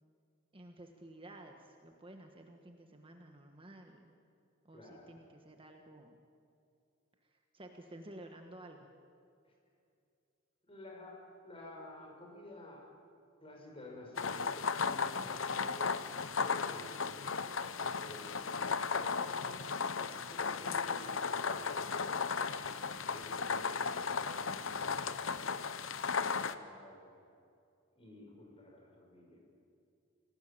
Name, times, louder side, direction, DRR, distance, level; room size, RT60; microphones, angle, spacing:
voice 1, 0.5-4.1 4.6-6.1 7.3-8.9, right 1 dB, 25° right, 3 dB, 1.5 m, -53 dB
voice 2, 4.7-5.2 10.7-11.2 11.4-12.9 13.4-16.0 16.4-19.7 20.3-21.8 22.6-25.8 26.2-27.1 28.0-29.4, left 1 dB, 30° left, 0 dB, 6.0 m, -52 dB
sound 1, 14.2-26.5, left 5 dB, 70° left, 0.9 m, -35 dB
28.0 x 18.0 x 8.7 m, 2.5 s
head